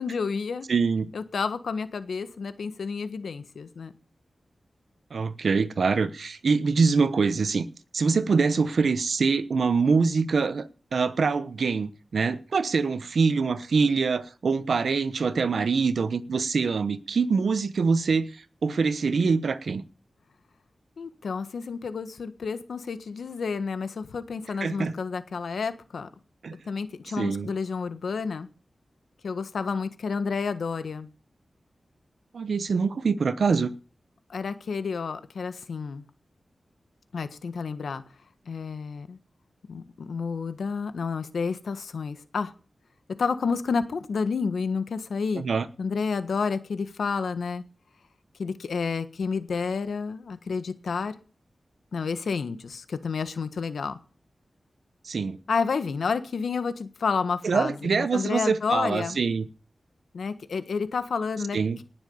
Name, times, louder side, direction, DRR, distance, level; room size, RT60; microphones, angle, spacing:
voice 1, 0.0-0.7 1.1-3.9 21.0-26.1 26.7-28.5 29.2-31.1 34.3-36.0 37.1-38.0 38.5-39.2 39.7-42.5 43.2-45.4 45.8-47.6 48.4-51.2 51.9-54.0 55.5-59.2 60.1-61.8, left 5 dB, 90° left, 1.4 m, -30 dB
voice 2, 0.7-1.1 5.1-7.7 7.9-19.8 24.6-24.9 26.4-26.6 27.2-27.5 32.3-33.7 45.4-45.6 55.0-55.4 57.4-59.5 61.5-61.8, right 5 dB, 75° right, 1.0 m, -24 dB
19.0 x 7.1 x 7.1 m
wide cardioid pair, 105°, 0 cm